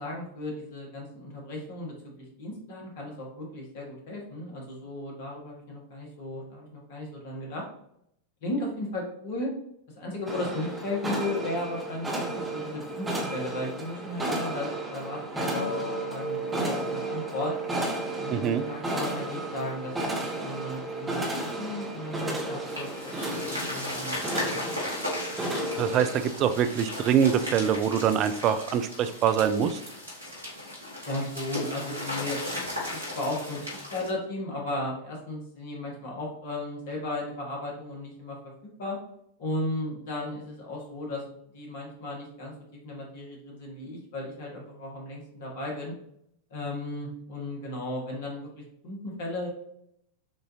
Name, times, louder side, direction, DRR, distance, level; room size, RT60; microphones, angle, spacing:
voice 1, 0.0-7.6 8.4-9.5 9.9-17.5 18.2-24.6 31.0-32.4 32.7-32.8 33.1-38.4 38.8-39.0 39.4-41.2 41.5-42.5 42.8-45.9 46.5-49.5, left 1 dB, 55° left, -1 dB, 1.5 m, -35 dB
sound 1, 10.3-26.3, right 2 dB, 10° right, 0.9 m, -33 dB
sound 2, 15.5-21.7, left 5 dB, 70° left, 0.6 m, -43 dB
voice 2, 18.3-18.6 25.8-29.8, right 8 dB, 35° right, 9 dB, 0.4 m, -24 dB
sound 3, 22.6-34.1, left 1 dB, 85° right, 1.9 m, -36 dB
7.1 x 2.6 x 2.8 m, 0.72 s
figure-of-eight pair, 90°, 0 cm